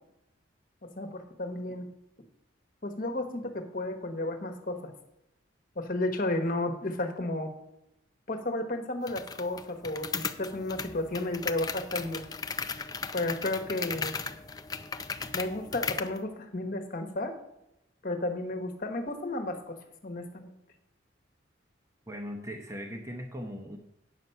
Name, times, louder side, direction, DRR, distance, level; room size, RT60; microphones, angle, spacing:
voice 1, 0.8-1.9 2.8-4.9 5.7-7.5 8.3-12.3 13.1-14.1 15.3-17.3 18.0-20.5, left 2 dB, 45° left, 6 dB, 1.2 m, -33 dB
sound 1, 9.1-16.2, left 5 dB, 20° left, 0.4 m, -36 dB
voice 2, 22.1-23.8, equal, 15° right, 2 dB, 0.8 m, -39 dB
9.2 x 6.8 x 5.6 m, 0.87 s
head